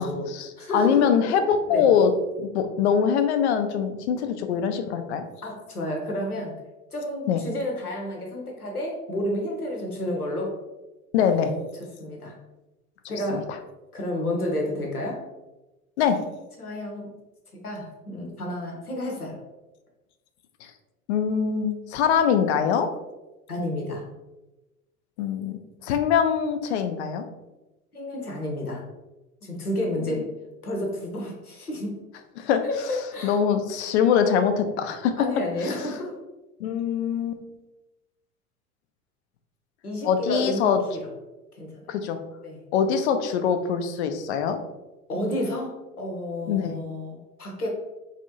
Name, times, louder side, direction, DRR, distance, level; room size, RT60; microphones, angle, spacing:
voice 1, 0.0-2.1 2.4-5.2 7.3-7.4 11.1-11.5 13.3-13.4 16.0-16.2 20.6-20.7 21.1-22.9 25.2-27.2 32.4-32.6 33.2-35.1 35.6-35.8 36.6-37.4 40.0-40.8 41.9-42.2 42.7-44.6 46.5-46.8, left 7 dB, 50° left, 8 dB, 0.4 m, -23 dB
voice 2, 0.6-1.1 1.7-1.8 5.4-6.5 6.9-10.5 12.0-12.3 13.1-13.4 13.9-15.2 16.6-17.1 17.6-19.4 23.5-24.0 27.9-28.8 29.4-30.3 30.6-32.0 32.6-33.4 35.2-36.1 39.8-40.8 41.5-42.0 42.4-42.6 45.1-47.7, left 1 dB, 85° left, 0 dB, 0.8 m, -30 dB
3.2 x 2.6 x 2.7 m, 1.0 s
figure-of-eight pair, 80°, 43 cm